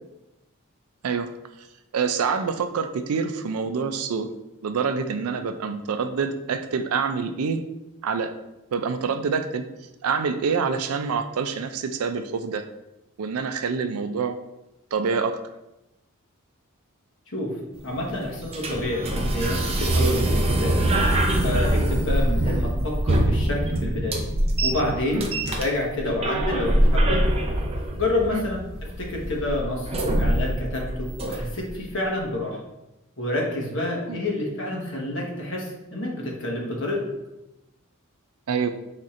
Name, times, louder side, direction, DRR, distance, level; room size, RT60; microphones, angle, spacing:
voice 1, 1.9-4.3 4.6-7.6 8.0-8.3 8.7-9.6 10.0-12.6 13.2-14.4 14.9-15.4 25.1-25.3 28.3-28.5 34.1-34.2 38.5-38.7, right 5 dB, 90° right, 9 dB, 0.4 m, -26 dB
sound 1, 17.7-31.7, right 1 dB, 30° right, 0.5 m, -24 dB
voice 2, 17.8-20.3 20.6-20.8 21.4-24.2 24.6-25.3 25.6-27.2 28.0-28.6 29.0-32.6 33.2-37.0, left 1 dB, 60° left, -1 dB, 1.2 m, -28 dB
5.1 x 4.2 x 2.5 m, 0.95 s
head